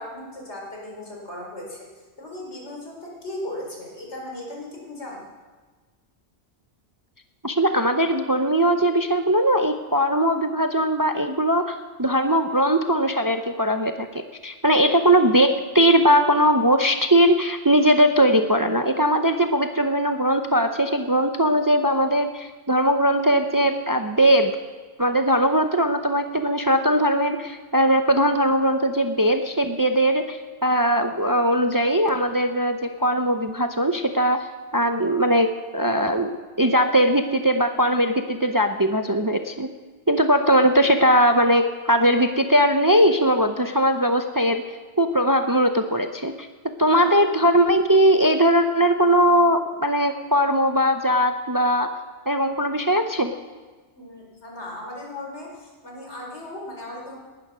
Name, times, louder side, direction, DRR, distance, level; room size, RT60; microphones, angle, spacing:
voice 1, 0.0-1.9 2.2-5.3 46.9-47.0 54.0-57.2, left 1 dB, 75° left, -1 dB, 4.7 m, -37 dB
voice 2, 7.4-24.6 25.0-34.5 34.7-39.7 40.1-44.6 45.0-46.5 46.8-51.9 52.3-53.3, equal, 20° right, 7 dB, 0.7 m, -20 dB
19.0 x 11.5 x 6.2 m, 1.3 s
omnidirectional pair, 1.2 m